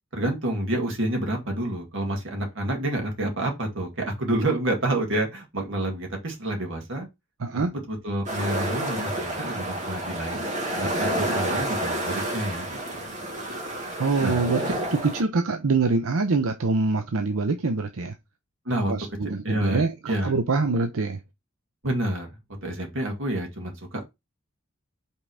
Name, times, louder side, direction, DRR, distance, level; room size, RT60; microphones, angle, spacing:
voice 1, 0.1-7.1 7.7-10.4 10.8-13.0 14.2-14.4 18.7-18.9 19.4-20.4 21.8-22.3 22.6-24.0, right 1 dB, 65° right, 2.2 m, -28 dB
voice 2, 7.4-7.7 14.0-18.1 18.9-21.2, right 3 dB, 85° right, 0.7 m, -25 dB
sound 1, 8.2-15.2, right 1 dB, 35° right, 1.8 m, -29 dB
5.5 x 3.7 x 4.9 m
head